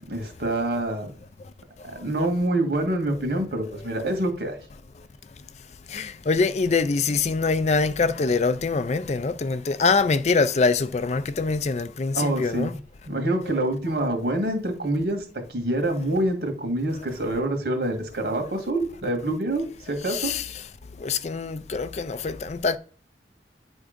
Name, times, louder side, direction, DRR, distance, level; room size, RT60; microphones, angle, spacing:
voice 1, 0.1-1.1 1.8-4.6 12.1-12.8 13.1-15.2 15.5-20.3, right 1 dB, 70° right, 1.9 m, -26 dB
voice 2, 5.9-12.7 20.1-20.5 21.0-22.8, left 4 dB, 40° left, 0.4 m, -24 dB
9.8 x 3.6 x 5.1 m
head